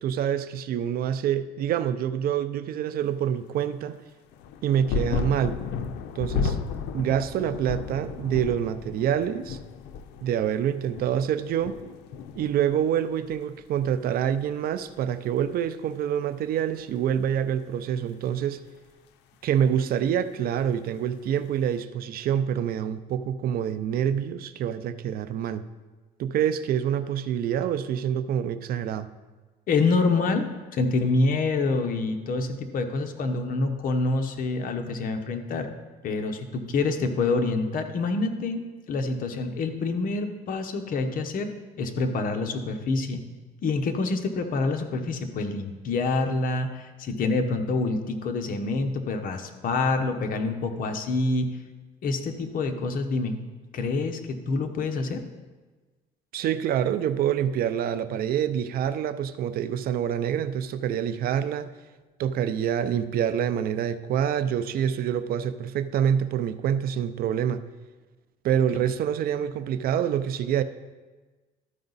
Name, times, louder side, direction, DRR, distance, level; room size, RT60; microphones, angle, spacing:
voice 1, 0.0-4.0 4.6-5.6 6.2-6.6 6.9-9.6 10.2-11.7 12.4-18.6 19.4-25.6 26.2-29.1 56.3-61.7 62.2-67.6 68.4-70.6, right 9 dB, 60° right, 13 dB, 0.5 m, -26 dB
sound 1, 4.3-13.4 13.6-14.5 15.5-15.6, left 6 dB, 85° left, 0.5 m, -33 dB
voice 2, 29.7-35.7 36.0-41.5 41.8-43.2 43.6-51.6 52.0-53.4 53.7-55.2, left 3 dB, 55° left, 6 dB, 1.0 m, -27 dB
13.0 x 4.9 x 4.0 m, 1.3 s
cardioid pair, 110°, 17 cm